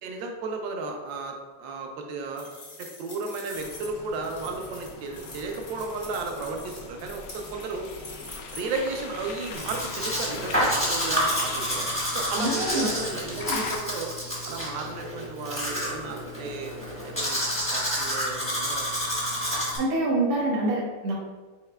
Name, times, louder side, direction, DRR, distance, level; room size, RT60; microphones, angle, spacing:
voice 1, 0.0-2.5 2.8-7.9 8.5-14.1 14.5-16.7 17.0-17.4 17.7-18.8, right 3 dB, 70° right, 2 dB, 1.3 m, -34 dB
sound 1, 2.4-8.9, left 2 dB, 50° left, 0.5 m, -45 dB
sound 2, 3.5-13.8, left 4 dB, 80° left, 1.0 m, -40 dB
Domestic sounds home sounds, 9.5-19.8, equal, 5° left, 0.6 m, -29 dB
voice 2, 12.4-12.9 13.4-13.6 19.8-21.2, right 2 dB, 85° right, -3 dB, 2.0 m, -26 dB
5.7 x 4.1 x 2.2 m, 1.3 s
omnidirectional pair, 2.4 m